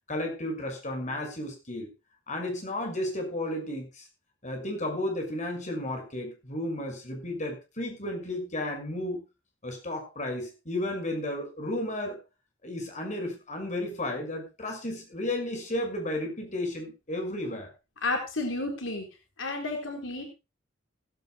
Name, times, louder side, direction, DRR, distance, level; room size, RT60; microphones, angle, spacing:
voice 1, 0.1-1.9 2.3-4.1 4.4-9.2 9.6-12.2 12.6-17.7, left 1 dB, 40° left, 3 dB, 5.9 m, -33 dB
voice 2, 18.0-19.1 19.4-20.3, left 2 dB, 80° left, 4 dB, 3.8 m, -31 dB
17.0 x 16.0 x 2.3 m, 0.28 s
head